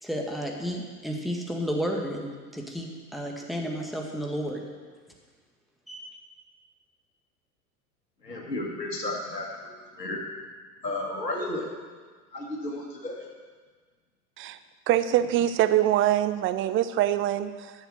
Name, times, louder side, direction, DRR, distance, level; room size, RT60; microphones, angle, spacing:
voice 1, 0.0-4.6 5.9-6.2, equal, ahead, 0 dB, 1.9 m, -32 dB
voice 2, 8.2-9.5 10.0-10.2 10.8-11.7 12.3-13.2, left 2 dB, 85° left, -1 dB, 2.2 m, -32 dB
voice 3, 14.9-17.7, right 12 dB, 25° right, 12 dB, 0.6 m, -24 dB
13.0 x 7.3 x 6.7 m, 1.5 s
figure-of-eight pair, 80°, 48 cm